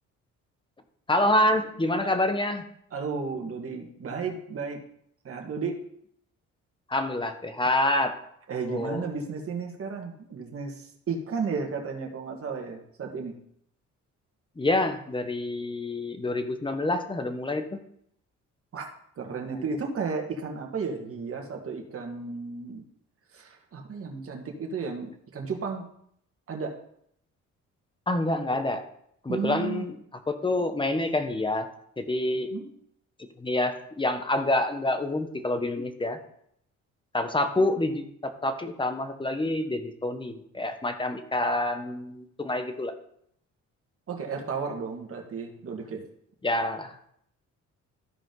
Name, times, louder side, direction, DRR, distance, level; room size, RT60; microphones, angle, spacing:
voice 1, 1.1-2.7 6.9-8.2 8.6-9.0 14.6-17.8 28.1-28.8 29.2-29.9 30.3-31.7 32.0-32.5 33.4-36.2 37.1-42.9 46.4-47.1, left 1 dB, 15° left, 8 dB, 1.2 m, -27 dB
voice 2, 2.9-4.8 5.2-5.8 8.5-13.4 18.7-18.9 19.2-22.8 23.3-25.8 26.5-26.8 29.3-29.9 32.5-32.6 44.1-46.0, right 5 dB, 50° right, 1 dB, 2.0 m, -33 dB
14.0 x 5.0 x 3.9 m, 0.70 s
cardioid pair, 90°, 30 cm